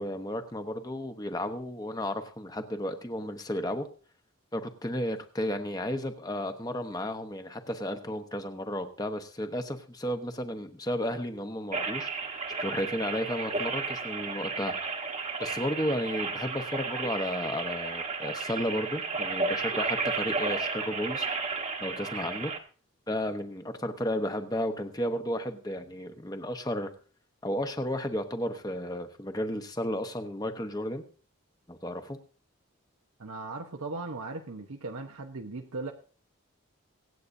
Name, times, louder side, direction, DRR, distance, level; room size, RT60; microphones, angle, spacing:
voice 1, 0.0-3.9 4.5-12.1 12.6-14.7 15.4-21.3 21.8-22.5 23.1-26.9 27.4-31.0 31.7-32.2, left 1 dB, 20° left, 6 dB, 1.0 m, -33 dB
sound 1, 11.7-22.6, right 4 dB, 30° right, 1.2 m, -33 dB
voice 2, 33.2-35.9, right 3 dB, 85° right, 3 dB, 0.9 m, -38 dB
25.0 x 8.4 x 2.7 m, 0.39 s
head